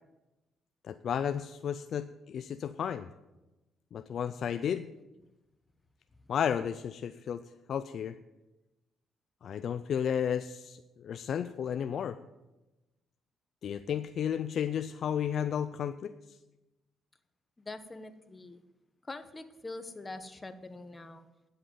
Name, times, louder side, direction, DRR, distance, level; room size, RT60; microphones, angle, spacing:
voice 1, 0.9-3.1 3.9-4.9 6.3-7.4 7.7-8.2 9.4-12.2 13.6-16.1, left 8 dB, 60° left, 11 dB, 0.5 m, -33 dB
voice 2, 17.6-18.6 19.1-21.2, left 2 dB, 25° left, 9 dB, 1.2 m, -44 dB
10.0 x 7.8 x 9.4 m, 1.0 s
cardioid pair, 90°, 0 cm